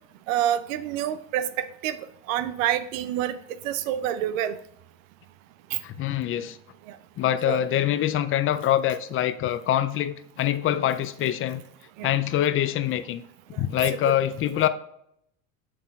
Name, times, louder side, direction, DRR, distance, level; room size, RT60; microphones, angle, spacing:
voice 1, 0.3-2.0 2.3-3.4 3.6-4.6 5.7-5.8 6.9-7.0 7.5-7.6 12.0-12.1 14.0-14.1 14.6-14.7, right 11 dB, 80° right, 14 dB, 0.5 m, -27 dB
voice 2, 5.8-6.6 7.2-11.6 12.0-13.2 13.6-14.7, left 11 dB, 35° left, 13 dB, 0.4 m, -24 dB
8.4 x 6.1 x 2.3 m, 0.74 s
hypercardioid pair, 90°, 39 cm